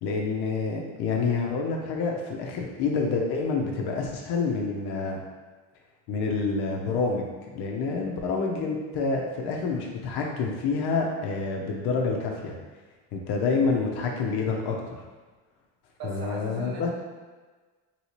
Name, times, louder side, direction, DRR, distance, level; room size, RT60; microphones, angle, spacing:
voice 1, 0.0-5.2 6.1-7.3 7.5-12.5 13.1-15.0 16.0-16.9, left 4 dB, 70° left, 0 dB, 0.7 m, -28 dB
voice 2, 16.0-16.9, right 3 dB, 60° right, -1 dB, 0.8 m, -39 dB
3.1 x 2.8 x 3.0 m, 1.3 s
supercardioid pair, 85°, 41 cm